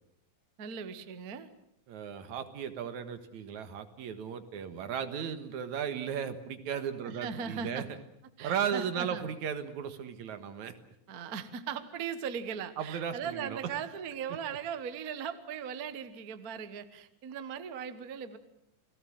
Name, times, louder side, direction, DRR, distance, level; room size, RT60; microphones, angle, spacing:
voice 1, 0.6-1.5 7.0-7.9 8.4-9.3 11.1-18.4, right 7 dB, 50° right, 11 dB, 1.1 m, -38 dB
voice 2, 1.9-8.0 8.4-10.8 12.8-13.6, right 8 dB, 70° right, 10 dB, 2.8 m, -36 dB
29.5 x 18.5 x 7.7 m, 0.79 s
omnidirectional pair, 3.5 m